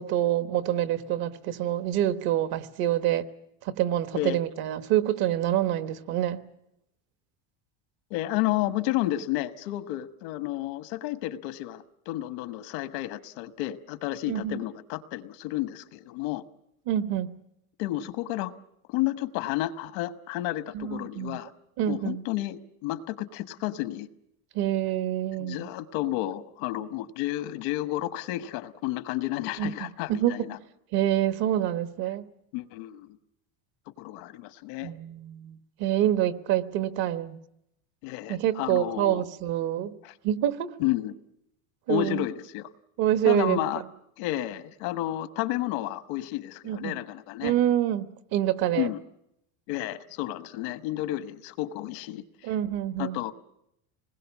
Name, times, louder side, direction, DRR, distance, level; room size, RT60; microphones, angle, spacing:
voice 1, 0.0-3.3 3.6-6.4 14.3-14.6 16.9-17.3 20.7-21.4 21.8-22.2 24.5-25.7 29.6-30.5 30.9-32.2 34.8-37.4 38.3-40.0 40.2-40.7 41.9-42.2 43.0-43.6 46.6-46.9 47.4-48.9 52.4-53.2, right 12 dB, 60° right, 12 dB, 1.3 m, -26 dB
voice 2, 8.1-16.4 17.8-18.5 18.9-21.5 21.9-24.1 25.4-30.6 32.5-33.2 34.0-34.9 38.0-39.2 40.0-40.1 40.8-41.1 41.9-42.7 43.2-43.8 44.2-47.5 48.7-49.0 49.7-52.5 53.0-53.3, left 15 dB, 80° left, 13 dB, 1.3 m, -31 dB
27.0 x 20.5 x 7.3 m, 0.78 s
cardioid pair, 160°, 43 cm